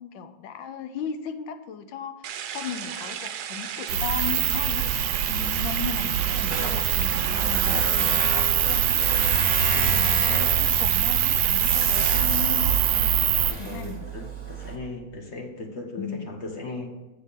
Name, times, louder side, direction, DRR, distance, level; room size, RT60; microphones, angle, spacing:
voice 1, 0.0-4.9 5.3-9.0 9.7-12.8 13.6-14.1 16.0-16.3, left 7 dB, 80° left, 9 dB, 1.3 m, -36 dB
sound 1, 2.2-12.2, right 9 dB, 70° right, 1.0 m, -35 dB
sound 2, 3.9-13.5, right 10 dB, 90° right, 1.4 m, -23 dB
Tools, 6.5-14.8, right 3 dB, 20° right, 0.8 m, -32 dB
voice 2, 9.7-10.0 13.5-16.9, left 3 dB, 50° left, 2 dB, 0.9 m, -37 dB
8.0 x 5.4 x 4.0 m, 1.2 s
omnidirectional pair, 2.1 m